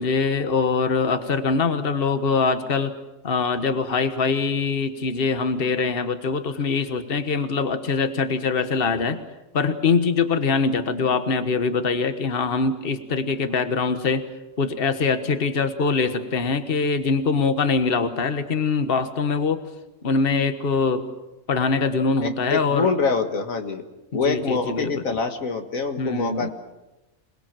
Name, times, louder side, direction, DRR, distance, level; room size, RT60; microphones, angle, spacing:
voice 1, 0.0-2.9 3.2-9.2 9.5-14.2 14.6-19.6 20.0-21.0 21.5-22.9 24.1-25.2 26.0-26.5, left 4 dB, 45° left, 9 dB, 1.5 m, -23 dB
voice 2, 22.2-23.8 24.1-26.5, left 4 dB, 85° left, 6 dB, 2.1 m, -25 dB
27.0 x 20.0 x 7.5 m, 1.0 s
omnidirectional pair, 1.4 m